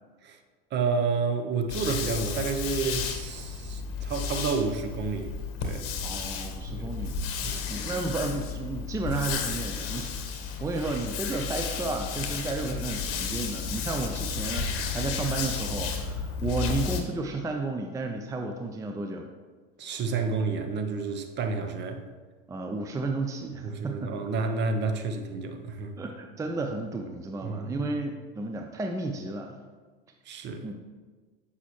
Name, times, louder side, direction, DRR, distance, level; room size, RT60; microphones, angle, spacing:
voice 1, 0.7-5.4 5.6-5.9 6.7-7.6 19.8-22.0 23.6-26.0 27.4-27.9 30.3-30.7, right 4 dB, 35° right, 0.8 m, -30 dB
sound 1, 1.7-17.0, left 5 dB, 50° left, 1.1 m, -33 dB
voice 2, 6.0-19.3 22.5-24.1 26.0-29.5 30.6-30.7, right 3 dB, 10° right, 0.5 m, -32 dB
8.0 x 5.6 x 3.0 m
hypercardioid pair, 85°, 29 cm